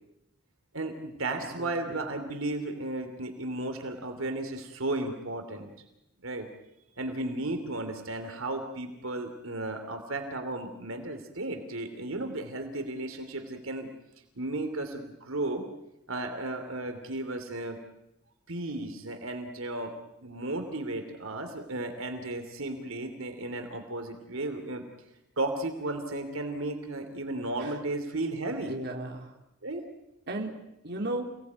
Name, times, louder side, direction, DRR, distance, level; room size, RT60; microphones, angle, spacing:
voice 1, 0.7-5.7 6.2-6.5 6.9-13.9 14.3-15.6 16.1-17.8 18.5-19.9 20.2-24.8 25.4-28.8 29.6-29.8, right 2 dB, 70° right, 6 dB, 3.0 m, -34 dB
voice 2, 1.4-2.0 27.6-27.7 28.7-29.3 30.3-30.5 30.8-31.4, right 1 dB, 50° right, 2 dB, 3.2 m, -35 dB
28.5 x 19.0 x 9.4 m, 0.89 s
head